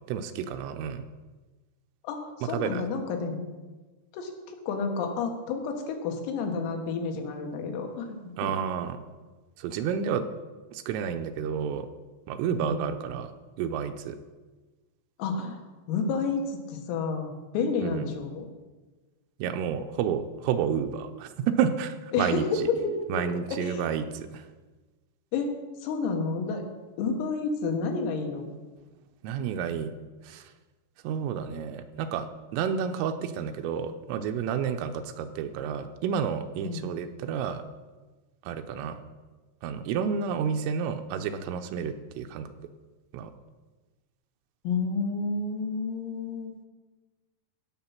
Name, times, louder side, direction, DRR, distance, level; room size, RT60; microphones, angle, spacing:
voice 1, 0.1-1.1 2.5-2.8 8.4-9.0 9.6-10.3 10.7-11.9 12.3-13.3 13.6-14.2 17.8-18.1 19.4-22.7 23.1-24.5 29.2-29.9 30.2-30.5 31.0-37.6 38.4-39.0 39.6-42.6 43.1-43.3, right 7 dB, 80° right, 8 dB, 3.2 m, -30 dB
voice 2, 2.0-3.5 4.1-8.5 12.6-12.9 15.2-15.6 15.9-18.5 22.1-23.2 23.5-23.8 25.3-25.5 25.8-26.6 27.0-28.5 36.6-36.9 44.7-46.7, left 4 dB, 80° left, 3 dB, 4.1 m, -30 dB
17.0 x 6.9 x 5.8 m, 1.2 s
omnidirectional pair, 5.9 m